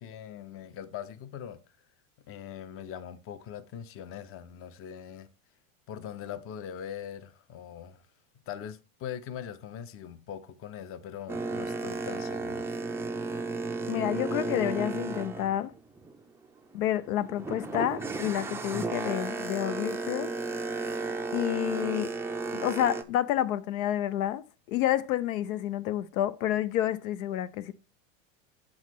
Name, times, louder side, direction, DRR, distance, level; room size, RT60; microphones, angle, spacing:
voice 1, 0.0-1.6 2.3-5.3 5.9-8.1 8.3-12.7, left 9 dB, 30° left, 0.7 m, -41 dB
Boat Water vehicle, 11.3-16.3 16.7-23.0, right 3 dB, 5° right, 0.4 m, -34 dB
voice 2, 13.9-15.7 16.7-20.3 21.3-22.1 22.5-27.7, left 12 dB, 75° left, 0.7 m, -29 dB
7.3 x 6.4 x 3.0 m
supercardioid pair, 120°, 42 cm